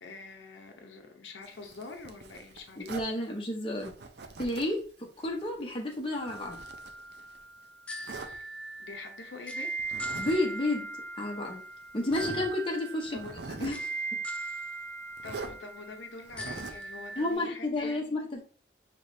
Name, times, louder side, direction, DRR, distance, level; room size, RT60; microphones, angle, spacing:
voice 1, 0.0-2.9 8.1-8.5 8.8-9.7 13.1-13.3 15.2-18.2, left 3 dB, 80° left, 4 dB, 0.7 m, -45 dB
Zipper (clothing), 1.4-3.1 3.8-4.8 5.2-7.4 8.0-8.3 9.8-10.4 10.7-10.8 11.5-11.6 12.0-12.5 13.0-13.9 15.2-15.5 16.2-16.9, right 3 dB, 65° right, 0.5 m, -43 dB
voice 2, 2.8-3.9 4.4-6.6 10.2-10.9 11.2-11.6 11.9-13.3 13.6-13.9 17.2-18.4, left 1 dB, 30° left, -1 dB, 0.8 m, -31 dB
sound 1, 6.1-17.3, right 3 dB, 5° left, 0.3 m, -40 dB
5.0 x 3.0 x 2.6 m, 0.41 s
head